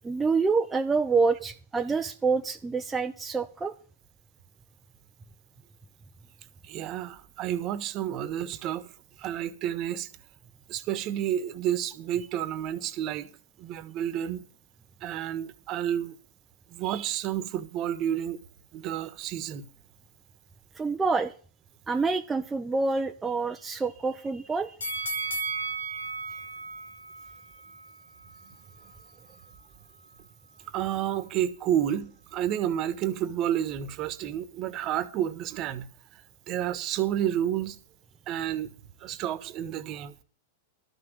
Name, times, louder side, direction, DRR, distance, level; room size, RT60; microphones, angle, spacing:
voice 1, 0.0-3.7 20.8-21.3 21.9-24.8, right 4 dB, 15° right, 0.7 m, -27 dB
voice 2, 6.6-8.9 9.2-10.1 10.7-13.3 13.6-14.5 15.0-16.2 16.7-18.4 18.7-19.7 25.9-26.0 30.7-36.2 36.5-37.8 38.3-38.7 39.0-40.1, right 11 dB, 40° right, 1.3 m, -30 dB
sound 1, 24.8-27.9 28.3-28.4, right 3 dB, 90° left, 2.1 m, -34 dB
12.5 x 6.2 x 8.1 m
hypercardioid pair, 105°, 0 cm